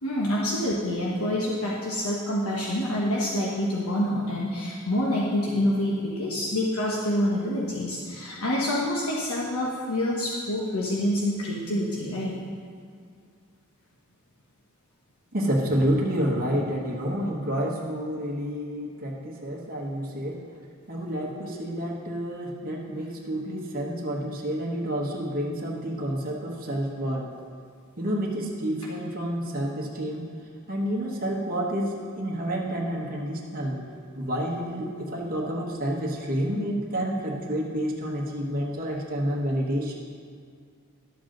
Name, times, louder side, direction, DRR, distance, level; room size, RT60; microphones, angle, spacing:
voice 1, 0.0-12.3, left 1 dB, 80° left, -4 dB, 1.1 m, -27 dB
voice 2, 15.3-20.4 20.9-27.3 28.0-30.3 30.7-33.8 34.1-39.9, equal, 40° right, -3 dB, 1.2 m, -29 dB
11.5 x 7.2 x 3.9 m, 2.2 s
head